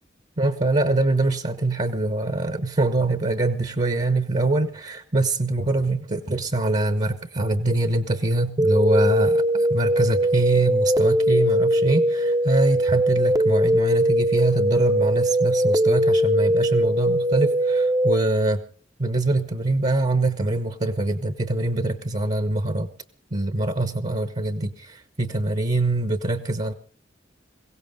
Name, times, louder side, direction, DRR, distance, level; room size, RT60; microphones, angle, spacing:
voice 1, 0.4-18.6 19.0-22.9 23.3-26.7, right 2 dB, 40° right, 9 dB, 1.0 m, -24 dB
sound 1, 8.6-18.1, right 1 dB, 20° right, 0.7 m, -20 dB
22.5 x 17.0 x 3.7 m, 0.41 s
head